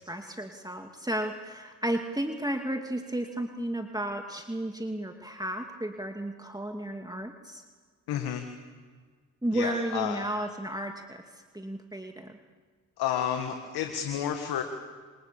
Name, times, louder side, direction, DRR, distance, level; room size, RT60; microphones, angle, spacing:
voice 1, 0.0-7.6 9.4-11.2 11.5-12.3, right 1 dB, 10° right, 4 dB, 2.6 m, -33 dB
voice 2, 8.1-8.5 9.5-10.2 13.0-14.6, left 9 dB, 85° left, 6 dB, 1.8 m, -31 dB
27.0 x 27.0 x 7.2 m, 1.5 s
supercardioid pair, 40°, 38 cm